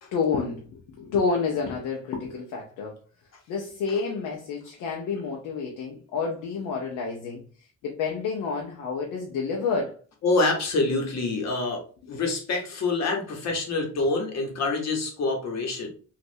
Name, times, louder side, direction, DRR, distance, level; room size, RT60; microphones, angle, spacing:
voice 1, 0.1-3.0 3.5-7.4 7.8-10.0, left 5 dB, 90° left, 0 dB, 0.7 m, -29 dB
voice 2, 10.2-15.9, left 3 dB, 60° left, 2 dB, 1.1 m, -26 dB
3.1 x 2.5 x 2.7 m, 0.40 s
cardioid pair, 90°, 30 cm